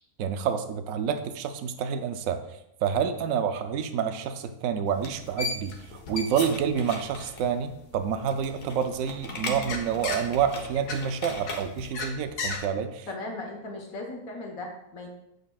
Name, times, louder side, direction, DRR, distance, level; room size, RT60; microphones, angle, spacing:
voice 1, 0.2-13.1, right 7 dB, 70° right, 9 dB, 0.9 m, -28 dB
sound 1, 4.9-12.0, left 1 dB, 40° left, 1.0 m, -40 dB
sound 2, 5.1-8.5 9.0-12.6, left 4 dB, 90° left, 1.5 m, -36 dB
voice 2, 13.1-15.1, left 2 dB, 65° left, 1 dB, 1.6 m, -37 dB
8.5 x 6.5 x 2.3 m, 0.82 s
omnidirectional pair, 1.6 m